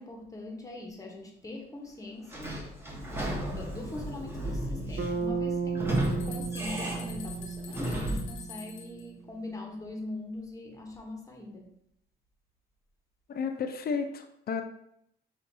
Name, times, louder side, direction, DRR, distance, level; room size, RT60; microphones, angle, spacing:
voice 1, 0.0-2.6 3.1-11.7, left 2 dB, 15° left, 1 dB, 0.9 m, -42 dB
Sliding door / Squeak, 2.3-8.4, right 1 dB, 10° right, 1.0 m, -34 dB
Bass guitar, 5.0-9.1, right 5 dB, 60° right, 0.6 m, -34 dB
sound 1, 5.5-9.0, left 6 dB, 80° left, 0.9 m, -47 dB
voice 2, 13.3-14.6, left 5 dB, 50° left, 7 dB, 0.5 m, -32 dB
6.2 x 2.5 x 2.6 m, 0.73 s
cardioid pair, 90°, 20 cm